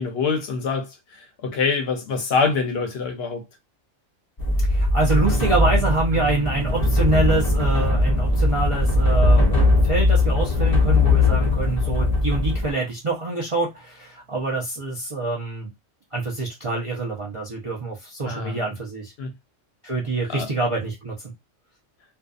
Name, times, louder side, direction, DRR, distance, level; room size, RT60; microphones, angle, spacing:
voice 1, 0.0-3.4 18.3-18.6 19.2-19.3 20.3-20.5, left 4 dB, 65° left, 0.8 m, -25 dB
sound 1, 4.4-12.7, left 2 dB, 35° left, 0.3 m, -20 dB
voice 2, 4.6-9.5 9.8-15.7 16.1-19.1 19.8-21.3, right 2 dB, 45° right, 0.4 m, -26 dB
sound 2, 5.0-11.8 12.1-12.7 13.1-13.2, right 6 dB, 65° right, 0.8 m, -36 dB
2.6 x 2.2 x 2.3 m
omnidirectional pair, 1.2 m